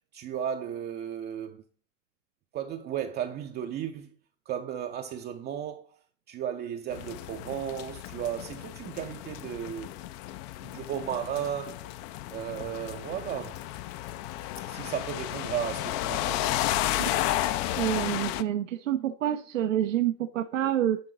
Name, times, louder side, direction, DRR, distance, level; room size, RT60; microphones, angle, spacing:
voice 1, 0.1-1.6 2.5-4.1 4.5-6.0 6.3-9.9 10.6-11.9 12.3-13.6 14.7-16.6, right 9 dB, 25° right, 0.5 m, -34 dB
sound 1, 6.9-18.4, left 14 dB, 45° left, 0.5 m, -33 dB
voice 2, 17.8-21.0, right 11 dB, 85° right, 0.6 m, -27 dB
10.5 x 3.8 x 3.8 m
hypercardioid pair, 95°, 37 cm